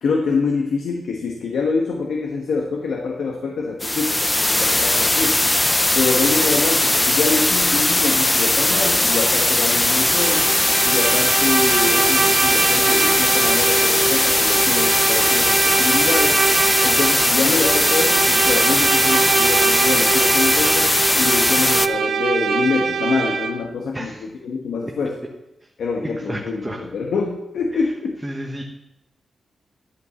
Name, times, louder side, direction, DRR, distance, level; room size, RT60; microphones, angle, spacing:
voice 1, 0.0-5.4 5.9-10.4 10.8-16.4 16.8-25.1 25.8-28.2, left 4 dB, 85° left, 1 dB, 1.2 m, -25 dB
sound 1, 3.8-21.9, left 1 dB, 15° left, 0.4 m, -18 dB
Bowed string instrument, 9.8-23.7, right 6 dB, 75° right, 0.6 m, -23 dB
voice 2, 23.9-24.3 26.0-26.9 28.2-28.6, right 1 dB, 15° right, 1 dB, 1.0 m, -31 dB
11.5 x 5.5 x 6.8 m, 0.91 s
wide cardioid pair, 110°, 0 cm